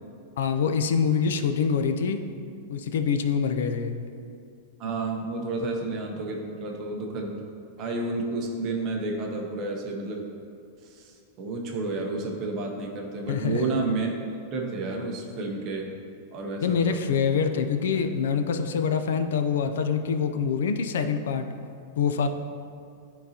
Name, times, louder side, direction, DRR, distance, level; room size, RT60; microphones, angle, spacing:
voice 1, 0.4-2.2 2.7-3.9 13.3-13.6 16.6-21.5 22.0-22.3, left 6 dB, 85° left, 7 dB, 0.5 m, -25 dB
voice 2, 4.8-7.4 7.8-10.3 10.8-14.1 14.5-15.9 16.3-17.0, right 3 dB, 30° right, 1 dB, 0.8 m, -31 dB
11.5 x 3.9 x 2.8 m, 2.4 s
supercardioid pair, 175°, 0 cm